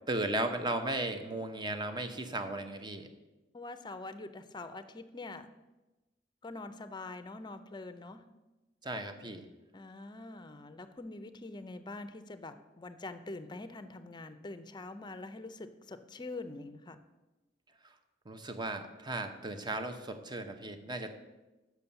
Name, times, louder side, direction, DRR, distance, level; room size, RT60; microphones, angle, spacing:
voice 1, 0.1-3.1 8.8-9.4 18.3-21.1, right 2 dB, 25° right, 7 dB, 0.8 m, -36 dB
voice 2, 3.5-5.5 6.4-8.2 9.7-17.0, left 2 dB, 25° left, 10 dB, 0.5 m, -44 dB
7.0 x 6.2 x 6.9 m, 1.1 s
head